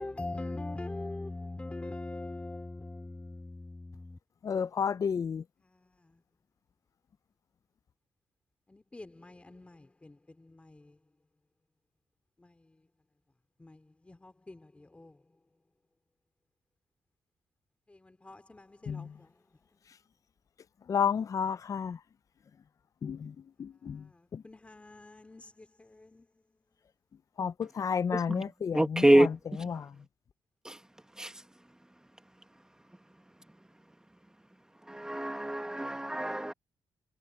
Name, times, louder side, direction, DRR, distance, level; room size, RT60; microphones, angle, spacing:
voice 1, 0.0-4.2 8.7-10.9 12.4-12.5 13.6-15.1 17.9-19.3 24.0-26.3, left 2 dB, 15° left, 3.2 m, -43 dB
voice 2, 4.4-5.4 18.9-19.1 20.9-22.0 23.0-23.3 23.6-24.0 24.3-24.4 27.4-29.3 29.6-29.9, left 7 dB, 40° left, 0.5 m, -31 dB
voice 3, 28.7-29.3 30.6-30.8 31.2-31.3 34.9-36.5, right 1 dB, 5° right, 1.6 m, -25 dB
cardioid pair, 135°, 9 cm